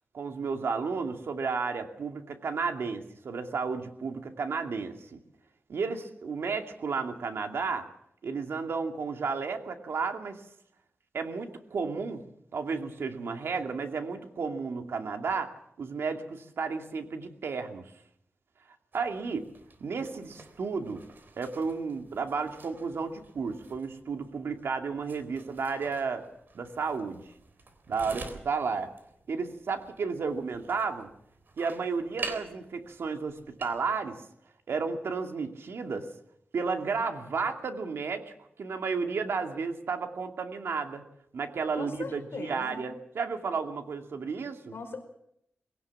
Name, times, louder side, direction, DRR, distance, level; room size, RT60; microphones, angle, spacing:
voice 1, 0.1-5.2 5.7-7.9 8.2-10.4 11.1-12.2 12.5-17.9 18.9-19.4 19.8-21.0 21.4-26.3 26.5-27.2 27.9-28.9 29.3-31.1 31.6-34.2 34.7-36.1 36.5-38.3 38.6-41.0 41.3-44.7, right 5 dB, 80° right, 5 dB, 2.5 m, -32 dB
sound 1, 18.9-33.8, right 4 dB, 55° right, 3.6 m, -47 dB
voice 2, 41.7-42.8 44.7-45.0, left 4 dB, 65° left, 4 dB, 4.9 m, -39 dB
21.5 x 17.5 x 7.3 m, 0.73 s
wide cardioid pair, 120°, 4 cm